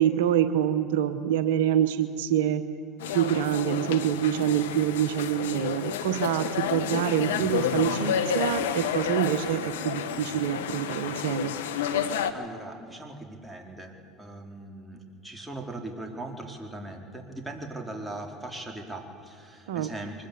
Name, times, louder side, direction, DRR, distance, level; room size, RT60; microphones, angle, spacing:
voice 1, 0.0-2.6 3.1-11.6 19.7-19.9, right 10 dB, 80° right, 10 dB, 1.1 m, -26 dB
sound 1, 3.0-12.3, left 8 dB, 85° left, 1.3 m, -30 dB
voice 2, 12.3-20.3, right 2 dB, 10° right, 2 dB, 4.3 m, -40 dB
24.5 x 21.5 x 8.5 m, 2.4 s
hypercardioid pair, 80°, 0 cm